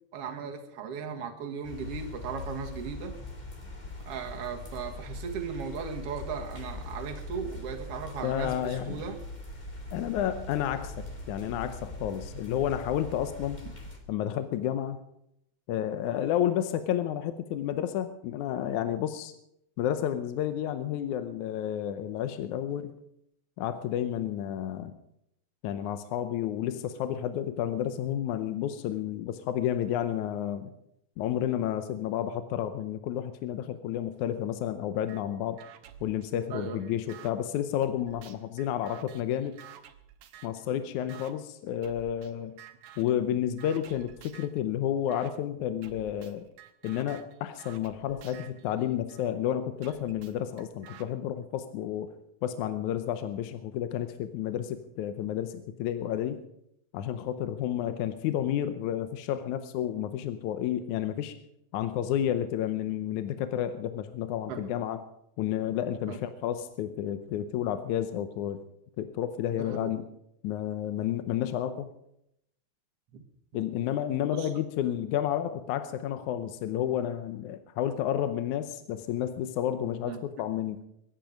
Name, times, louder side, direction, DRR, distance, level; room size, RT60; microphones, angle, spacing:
voice 1, 0.1-3.2 4.1-9.2 36.5-36.8 64.5-64.7 66.1-66.2 69.5-69.9 73.1-73.2 74.3-74.5 80.1-80.2, right 6 dB, 55° right, 3 dB, 2.5 m, -37 dB
sound 1, 1.6-14.0, left 2 dB, 15° left, 1.9 m, -41 dB
voice 2, 8.2-9.0 9.9-13.7 14.1-15.0 15.7-19.3 19.8-23.0 23.6-24.9 25.6-30.7 31.2-35.6 36.0-39.6 40.4-42.6 43.0-46.4 46.8-52.1 52.4-56.4 56.9-61.3 61.7-65.0 65.4-68.6 69.0-70.0 70.4-71.9 73.5-80.8, left 10 dB, 75° left, 10 dB, 2.1 m, -31 dB
sound 2, 35.1-35.2 35.6-37.3 37.8-40.6 41.1-41.3 41.8-42.3 42.6-43.2 43.6-44.6 45.1-45.3 45.8-49.3 49.8-51.1, right 10 dB, 80° right, 2.6 m, -51 dB
23.0 x 10.5 x 5.2 m, 0.77 s
omnidirectional pair, 3.6 m